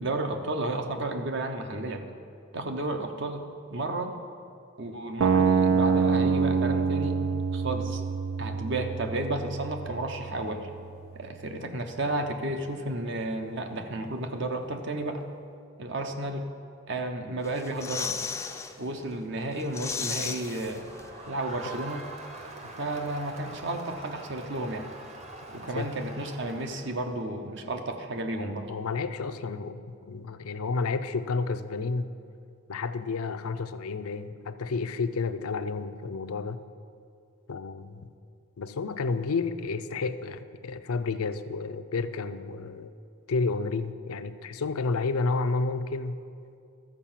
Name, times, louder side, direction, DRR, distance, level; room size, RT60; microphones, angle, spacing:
voice 1, 0.0-2.0 2.5-4.2 4.8-7.2 7.5-8.0 8.4-10.7 11.1-15.2 15.8-16.5 16.9-18.3 18.8-20.8 21.3-22.1 22.6-24.9 25.5-28.7, right 2 dB, 55° right, 6 dB, 0.8 m, -32 dB
sound 1, 5.2-11.2, right 5 dB, 80° right, 0.4 m, -26 dB
sound 2, 17.4-18.7 19.1-19.2 19.5-21.3 21.5-21.6, left 5 dB, 15° left, 0.3 m, -35 dB
Crowd, 20.4-27.2, right 2 dB, 30° right, 0.9 m, -44 dB
voice 2, 28.7-32.1 32.7-36.6 37.5-38.1 38.6-42.9 43.3-46.2, left 4 dB, 85° left, 10 dB, 0.5 m, -31 dB
13.0 x 4.7 x 7.3 m, 2.4 s
head